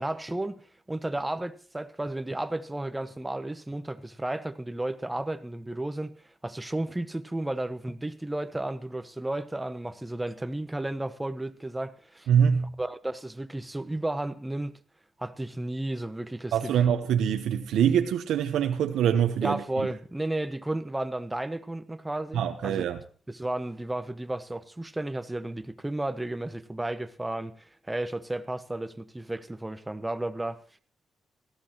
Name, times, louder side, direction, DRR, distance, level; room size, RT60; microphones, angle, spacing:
voice 1, 0.0-6.1 6.4-12.3 12.8-14.7 15.2-16.7 19.4-22.9 23.3-30.6, right 1 dB, 10° right, 0.9 m, -33 dB
voice 2, 12.3-12.8 16.5-19.6 22.3-23.0, right 8 dB, 90° right, 0.9 m, -24 dB
17.0 x 14.5 x 3.1 m
cardioid pair, 95°, 0 cm